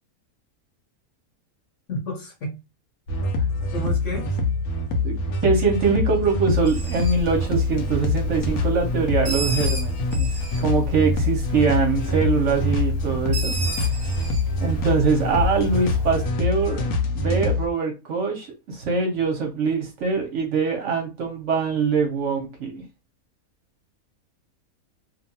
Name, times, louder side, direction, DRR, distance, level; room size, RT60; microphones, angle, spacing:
voice 1, 1.9-2.6 3.7-4.4 13.7-13.9, left 2 dB, 60° left, 1.2 m, -32 dB
sound 1, 3.1-17.7, left 2 dB, 80° left, 1.1 m, -25 dB
voice 2, 5.4-13.6 13.9-14.0 14.6-16.8 17.1-22.8, right 5 dB, 60° right, 0.9 m, -23 dB
Bird, 6.6-16.2, equal, 30° right, 1.0 m, -34 dB
2.8 x 2.2 x 2.7 m
omnidirectional pair, 1.5 m